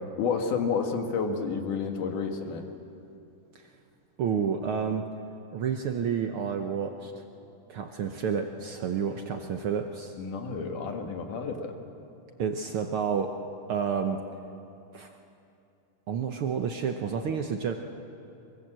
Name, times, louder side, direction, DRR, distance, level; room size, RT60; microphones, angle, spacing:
voice 1, 0.2-2.7 10.2-11.8, left 5 dB, 70° left, 4 dB, 3.2 m, -30 dB
voice 2, 4.2-5.1 5.5-7.2 7.7-10.1 12.4-13.3 13.7-14.2 14.9-15.1 16.1-17.7, right 7 dB, 85° right, 5 dB, 1.2 m, -30 dB
24.0 x 23.5 x 7.6 m, 2.7 s
omnidirectional pair, 3.8 m